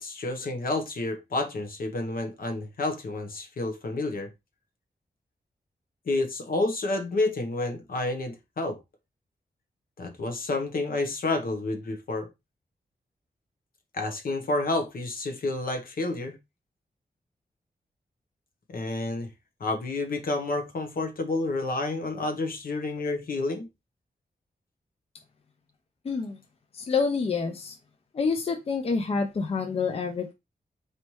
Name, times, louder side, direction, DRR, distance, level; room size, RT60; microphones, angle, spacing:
voice 1, 0.0-4.3 6.1-8.8 10.0-12.3 13.9-16.4 18.7-19.3 19.6-23.7, left 2 dB, 65° left, 1.0 m, -29 dB
voice 2, 26.0-26.4 26.7-27.7 28.1-30.3, left 5 dB, 40° left, 0.5 m, -27 dB
4.2 x 3.2 x 3.0 m
wide cardioid pair, 150°, 16 cm